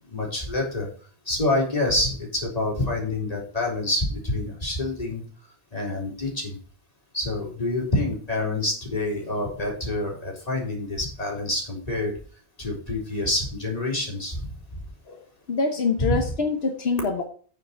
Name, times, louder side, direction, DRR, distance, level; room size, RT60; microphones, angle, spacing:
voice 1, 0.1-0.9 1.3-5.2 5.7-6.6 7.1-12.1 12.6-14.4 16.0-16.2, left 2 dB, 40° left, -2 dB, 4.1 m, -27 dB
voice 2, 15.1-17.2, left 4 dB, 80° left, 4 dB, 1.4 m, -25 dB
9.2 x 7.7 x 4.6 m, 0.43 s
omnidirectional pair, 1.0 m